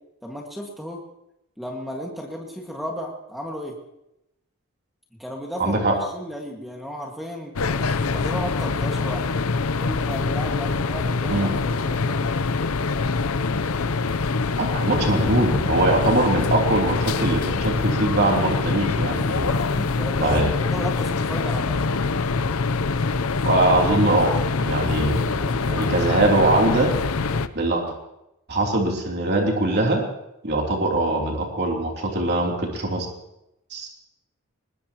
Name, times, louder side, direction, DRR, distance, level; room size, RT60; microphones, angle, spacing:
voice 1, 0.2-1.0 1.6-3.8 5.2-9.4 9.8-12.3 19.3-21.9, equal, ahead, 0 dB, 1.9 m, -34 dB
voice 2, 5.6-5.9 11.3-11.5 14.6-19.5 20.2-20.5 23.4-24.3 24.6-26.9 27.5-27.9 28.5-30.0 30.4-33.1 33.7-33.9, right 2 dB, 50° right, 0 dB, 3.3 m, -22 dB
sound 1, 7.6-27.5, left 4 dB, 75° left, 0.7 m, -24 dB
21.0 x 20.5 x 3.0 m, 0.87 s
head